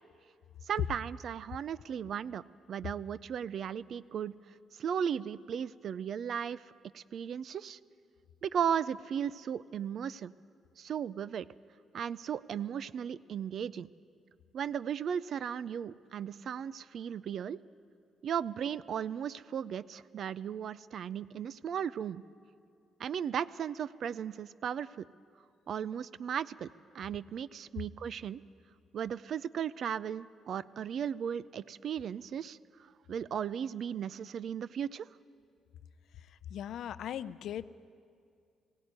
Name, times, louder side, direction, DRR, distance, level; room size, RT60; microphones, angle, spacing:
voice 1, 0.6-2.4 2.7-4.3 4.7-7.8 8.4-10.3 10.8-11.5 11.9-13.9 14.5-17.6 18.2-22.2 23.0-25.1 25.7-26.7 26.9-28.4 28.9-32.6 33.1-35.1, right 8 dB, 60° right, 18 dB, 0.5 m, -36 dB
voice 2, 36.1-37.7, left 10 dB, 75° left, 15 dB, 0.6 m, -39 dB
18.0 x 16.5 x 9.6 m, 2.3 s
cardioid pair, 90°, 0 cm